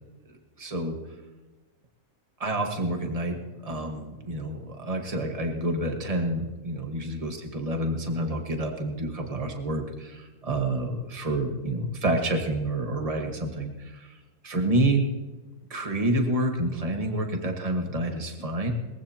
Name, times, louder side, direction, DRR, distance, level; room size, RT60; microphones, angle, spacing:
voice 1, 0.6-1.0 2.4-14.2 14.4-15.0 15.7-18.7, right 1 dB, 25° right, 4 dB, 1.6 m, -28 dB
21.0 x 15.0 x 2.9 m, 1.2 s
omnidirectional pair, 1.6 m